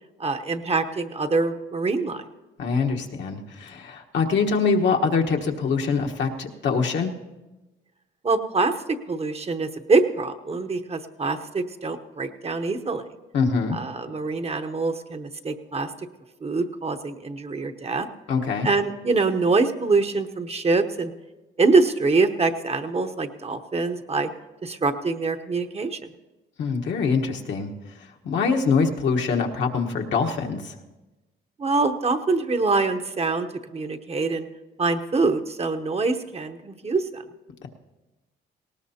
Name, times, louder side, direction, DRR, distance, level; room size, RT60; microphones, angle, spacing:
voice 1, 0.2-2.2 8.2-8.7 9.1-13.0 13.7-15.9 16.4-18.1 18.6-21.1 21.6-24.3 24.6-26.1 31.6-34.5 34.8-37.2, right 3 dB, 30° right, 8 dB, 0.9 m, -24 dB
voice 2, 2.6-7.1 13.3-13.8 18.3-18.7 26.6-27.7 28.2-30.7, left 5 dB, 65° left, 2 dB, 1.3 m, -24 dB
19.0 x 18.0 x 2.8 m, 1.1 s
cardioid pair, 90°, 20 cm